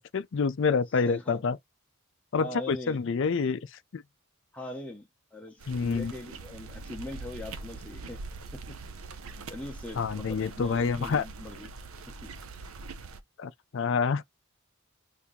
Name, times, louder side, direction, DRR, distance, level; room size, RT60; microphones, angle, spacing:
voice 1, 0.0-1.6 2.3-3.6 3.9-4.0 5.7-6.1 10.0-11.2 13.4-14.2, left 5 dB, 60° left, 0.4 m, -27 dB
voice 2, 1.0-1.6 2.4-3.0 4.5-8.2 8.5-8.8 9.5-11.7 12.2-12.3, left 1 dB, 5° left, 0.6 m, -41 dB
sound 1, 5.6-13.2, right 3 dB, 75° right, 0.6 m, -43 dB
2.8 x 2.6 x 3.6 m
head